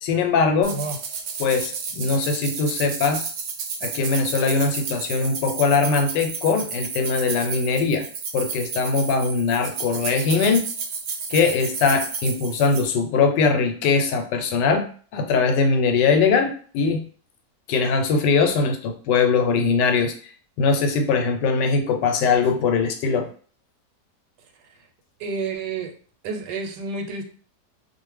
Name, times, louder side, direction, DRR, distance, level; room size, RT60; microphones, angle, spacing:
voice 1, 0.0-0.8 1.4-3.2 3.8-8.1 8.3-10.6 11.3-14.9 15.1-17.0 17.7-20.1 20.6-23.3, left 4 dB, 90° left, 6 dB, 1.2 m, -21 dB
sound 1, 0.6-12.9, right 5 dB, 65° right, 0.9 m, -32 dB
voice 2, 25.2-25.9 26.2-27.2, right 4 dB, 85° right, 4 dB, 1.2 m, -29 dB
2.5 x 2.4 x 3.1 m, 0.43 s
omnidirectional pair, 1.8 m